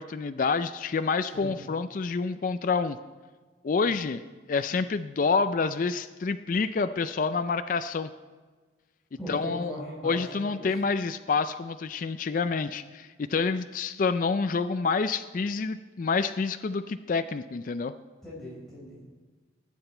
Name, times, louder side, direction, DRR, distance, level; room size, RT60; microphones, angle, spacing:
voice 1, 0.0-3.0 3.6-8.1 9.3-9.7 10.0-17.9, left 4 dB, 45° left, 10 dB, 0.4 m, -28 dB
voice 2, 3.7-4.0 9.2-10.7 18.2-19.1, left 1 dB, ahead, -8 dB, 4.4 m, -40 dB
19.5 x 8.0 x 4.3 m, 1.4 s
head